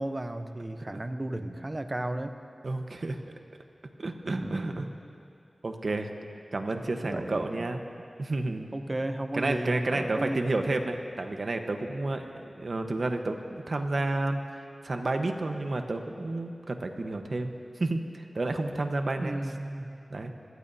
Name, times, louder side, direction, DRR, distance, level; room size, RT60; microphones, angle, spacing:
voice 1, 0.0-2.4 4.3-4.9 7.0-7.7 8.7-10.5 19.2-19.9, right 1 dB, 30° right, 8 dB, 0.8 m, -34 dB
voice 2, 2.6-3.2 4.0-4.9 5.6-6.1 6.5-7.8 8.2-8.7 9.3-19.4 20.1-20.3, right 2 dB, 60° right, 5 dB, 1.1 m, -31 dB
26.0 x 17.5 x 2.8 m, 2.5 s
wide cardioid pair, 80°, 0 cm